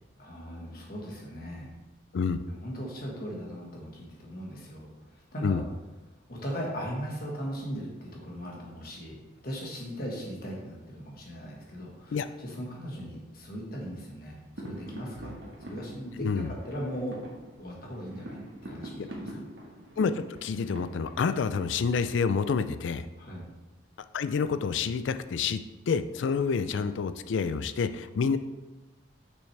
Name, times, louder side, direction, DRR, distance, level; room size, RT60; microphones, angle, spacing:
voice 1, 0.2-1.7 2.5-5.6 6.3-9.2 9.4-17.2 17.6-19.7 23.2-23.5, equal, 50° left, -2 dB, 1.5 m, -38 dB
sound 1, 14.5-22.2, right 1 dB, 70° right, 1.3 m, -45 dB
voice 2, 16.2-16.5 20.0-23.1 24.1-25.6 25.9-28.4, left 5 dB, 75° left, 12 dB, 0.4 m, -28 dB
6.3 x 6.1 x 3.3 m, 1.1 s
head